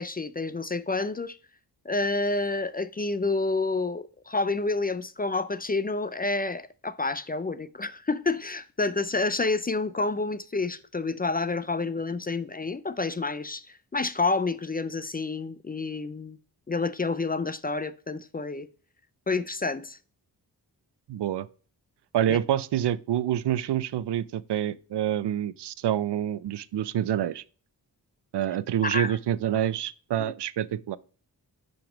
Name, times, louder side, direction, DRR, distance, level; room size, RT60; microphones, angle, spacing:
voice 1, 0.0-1.4 1.9-16.4 16.7-18.7 19.3-20.0 22.3-22.4 28.8-29.2 30.2-30.3, left 3 dB, 25° left, 0.4 m, -29 dB
voice 2, 21.1-21.5 22.1-27.4 28.3-31.0, right 11 dB, 80° right, 0.5 m, -27 dB
5.9 x 5.3 x 5.0 m
wide cardioid pair, 75°, 41 cm